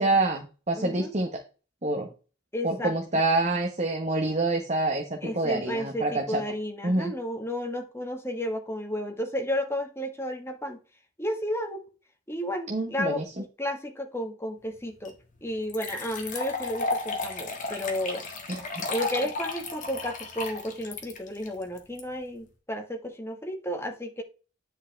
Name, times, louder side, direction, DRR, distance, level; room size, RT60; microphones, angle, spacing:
voice 1, 0.0-1.4 1.8-2.1 2.6-5.0 5.4-6.4 6.8-7.1 12.7-13.2 18.5-18.8, right 2 dB, 35° right, 3 dB, 1.3 m, -26 dB
voice 2, 0.8-1.1 2.5-2.9 5.2-10.8 11.2-11.8 12.3-15.1 15.4-18.2 18.9-24.2, equal, 15° left, 3 dB, 1.5 m, -32 dB
sound 1, 15.0-15.1 15.7-22.0, left 3 dB, 45° left, 1.9 m, -33 dB
10.0 x 5.2 x 3.3 m, 0.33 s
head